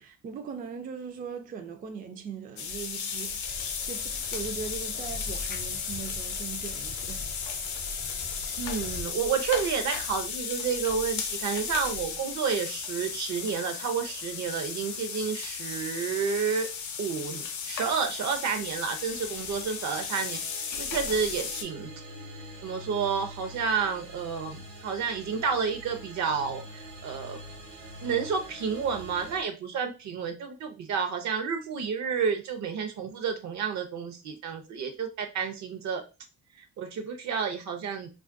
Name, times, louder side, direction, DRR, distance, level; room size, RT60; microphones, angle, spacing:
voice 1, 0.0-3.6 3.9-7.3, right 6 dB, 30° right, 0.4 m, -40 dB
sound 1, 2.6-21.6, left 6 dB, 80° left, 0.6 m, -35 dB
sound 2, 3.4-9.0, left 2 dB, 35° left, 0.5 m, -42 dB
voice 2, 8.6-16.7 17.0-20.4 20.8-21.9 22.6-27.4 28.0-36.0 36.6-38.1, right 6 dB, 65° right, 0.6 m, -30 dB
sound 3, 17.2-29.4, equal, 85° right, 1.1 m, -46 dB
2.4 x 2.2 x 2.5 m
cardioid pair, 90°, 30 cm